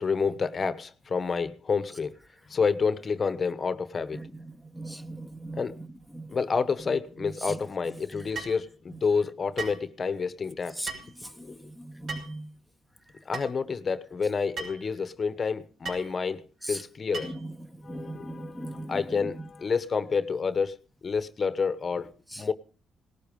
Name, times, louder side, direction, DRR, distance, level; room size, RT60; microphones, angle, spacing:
voice 1, 0.0-2.1 2.5-4.2 5.6-5.8 6.3-10.9 11.4-11.7 13.2-16.4 16.7-17.3 17.8-22.1 22.4-22.5, left 5 dB, 40° left, 1.1 m, -29 dB
voice 2, 4.1-6.3 7.2-7.6 8.1-8.3 8.9-9.0 10.8-10.9 11.2-12.5 16.6-16.8 17.2-19.3 22.3-22.4, right 1 dB, 5° right, 1.2 m, -39 dB
sound 1, 8.3-8.6 9.6-9.8 10.9-11.1 12.1-12.4 13.3-13.5 14.6-14.8 15.8-16.1 17.1-17.4, right 4 dB, 65° right, 6.1 m, -37 dB
18.5 x 12.5 x 5.3 m
cardioid pair, 90°, 0 cm